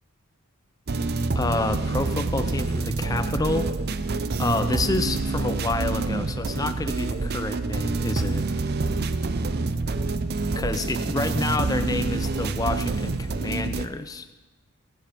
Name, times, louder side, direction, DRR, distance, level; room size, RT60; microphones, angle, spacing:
sound 1, 0.9-13.9, right 3 dB, 45° right, 0.6 m, -27 dB
voice 1, 1.3-3.7 4.4-8.4 10.6-14.3, left 2 dB, 15° left, 10 dB, 0.4 m, -28 dB
20.5 x 11.0 x 4.5 m, 1.2 s
head